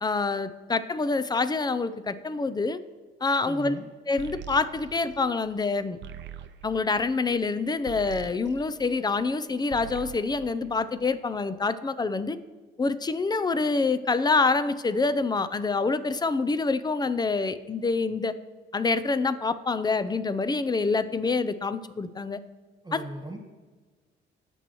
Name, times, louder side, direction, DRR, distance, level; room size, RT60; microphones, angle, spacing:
voice 1, 0.0-2.8 3.2-3.8 4.1-6.0 6.6-12.4 12.8-18.3 18.7-22.4 22.9-23.0, left 4 dB, 20° left, 13 dB, 0.5 m, -26 dB
voice 2, 3.4-3.8 22.8-23.4, right 1 dB, 20° right, 2 dB, 1.4 m, -38 dB
sound 1, 4.2-9.3 9.6-11.4, right 10 dB, 65° right, 0.5 m, -44 dB
16.5 x 6.1 x 3.0 m, 1.4 s
cardioid pair, 90°, 20 cm